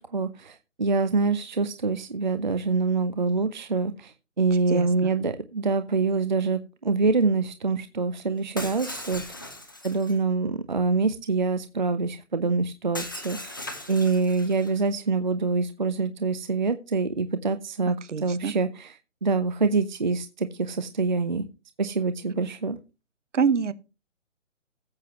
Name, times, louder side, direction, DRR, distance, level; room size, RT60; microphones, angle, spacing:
voice 1, 0.0-9.4 9.8-13.6 13.9-19.0 19.2-21.5 21.8-22.8, right 4 dB, 35° right, 0.5 m, -25 dB
voice 2, 4.7-5.1 17.9-18.5 23.3-23.7, right 6 dB, 65° right, 1.2 m, -26 dB
Shatter, 8.6-10.2 12.9-14.8, left 2 dB, 15° left, 0.6 m, -38 dB
14.5 x 7.5 x 2.8 m
hypercardioid pair, 170°, 39 cm